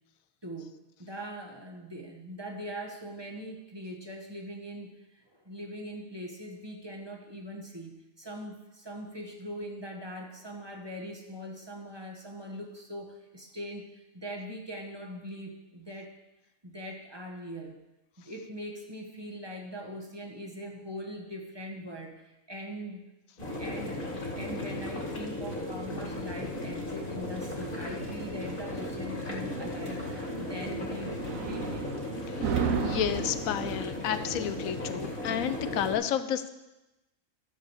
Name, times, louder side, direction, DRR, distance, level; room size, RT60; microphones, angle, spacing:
voice 1, 0.4-4.9 5.3-16.1 16.6-17.8 18.2-23.0 23.6-32.0, equal, 20° right, 0 dB, 1.3 m, -41 dB
sound 1, 23.4-35.9, left 1 dB, 40° left, 2.3 m, -36 dB
sound 2, 25.0-33.7, right 6 dB, 85° right, 1.2 m, -37 dB
voice 2, 32.4-36.5, left 10 dB, 90° left, 11 dB, 1.1 m, -31 dB
13.0 x 4.9 x 7.2 m, 1.0 s
omnidirectional pair, 1.4 m